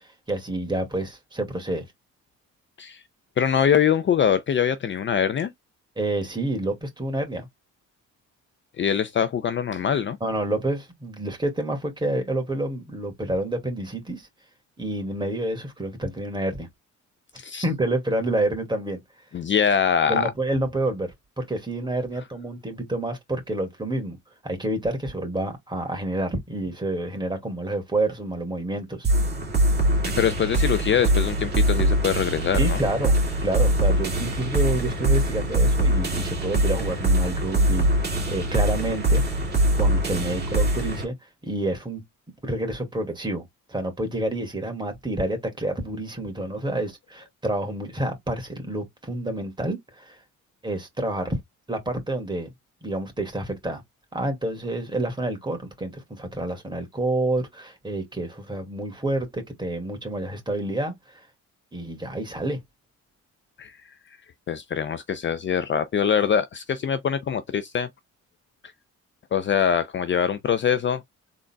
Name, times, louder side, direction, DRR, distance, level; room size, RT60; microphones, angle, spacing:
voice 1, 0.0-1.9 6.0-7.5 10.2-14.3 14.8-16.7 17.6-19.0 20.1-24.2 24.4-29.1 32.6-39.2 39.8-41.1 41.4-42.0 42.4-50.2 50.6-51.4 51.7-52.5 52.8-53.8 54.1-60.9 61.7-62.6, right 1 dB, 15° right, 2.1 m, -28 dB
voice 2, 3.4-5.5 8.8-10.2 17.4-17.6 19.3-20.3 30.0-32.8 63.6-63.8 64.5-67.9 69.3-71.0, left 8 dB, 40° left, 0.5 m, -23 dB
sound 1, 29.0-41.0, right 1 dB, 35° right, 2.2 m, -22 dB
3.9 x 3.6 x 2.2 m
cardioid pair, 90°, 30 cm